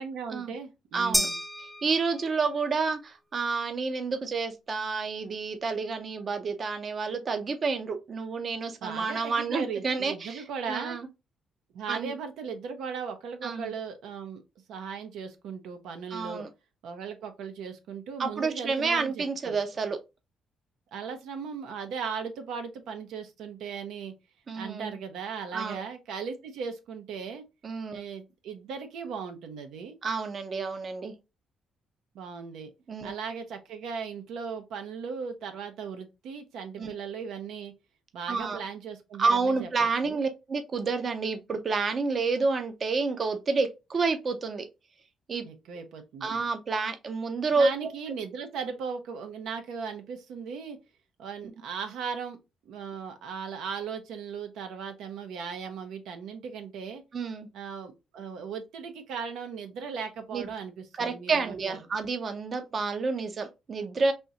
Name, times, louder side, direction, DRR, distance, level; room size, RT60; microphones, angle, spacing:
voice 1, 0.0-1.4 8.8-11.0 11.7-14.4 14.7-16.5 16.8-19.6 20.9-24.1 24.5-27.4 27.9-30.0 32.1-32.7 33.0-37.7 38.1-39.7 40.0-40.2 45.4-46.3 47.6-50.8 51.2-52.4 52.7-57.0 57.5-61.8, right 6 dB, 85° right, 0.7 m, -37 dB
voice 2, 0.9-1.3 1.8-11.1 11.9-12.1 13.4-13.7 16.1-16.5 18.2-20.0 24.5-24.9 25.5-25.8 27.6-28.0 30.0-31.1 32.9-33.1 36.8-36.9 38.3-38.6 39.2-44.6 45.3-45.4 46.2-47.7 57.1-57.5 60.3-60.5 61.0-64.1, right 4 dB, 45° right, 0.6 m, -29 dB
sound 1, 1.1-2.6, equal, ahead, 0.5 m, -31 dB
3.5 x 2.6 x 2.8 m
cardioid pair, 90°, 0 cm